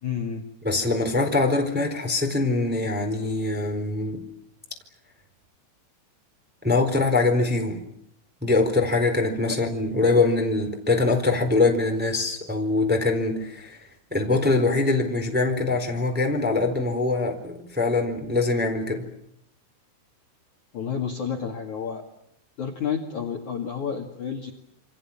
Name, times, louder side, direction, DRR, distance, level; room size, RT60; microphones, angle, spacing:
voice 1, 0.0-0.5 20.7-22.0 22.6-24.5, left 7 dB, 50° left, 2 dB, 2.8 m, -30 dB
voice 2, 0.6-4.2 6.6-7.8 8.4-13.8 14.1-19.0, left 3 dB, ahead, 3 dB, 3.2 m, -23 dB
28.5 x 27.0 x 7.4 m, 0.75 s
omnidirectional pair, 5.8 m